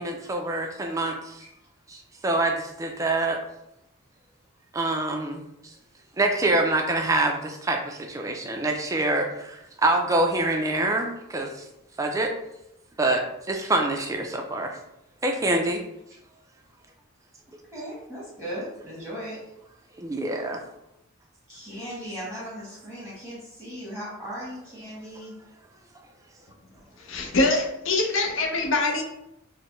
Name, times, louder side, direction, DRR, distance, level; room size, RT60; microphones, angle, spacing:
voice 1, 0.0-1.4 1.9-3.4 4.7-5.7 6.2-11.7 12.0-12.3 13.0-14.8 15.2-15.8 19.9-20.6, right 2 dB, 15° right, 3 dB, 0.3 m, -26 dB
voice 2, 17.7-19.4 21.5-25.3, equal, 5° left, -9 dB, 1.1 m, -37 dB
voice 3, 27.0-29.0, left 2 dB, 65° left, 2 dB, 0.6 m, -24 dB
4.1 x 2.1 x 3.0 m, 0.84 s
head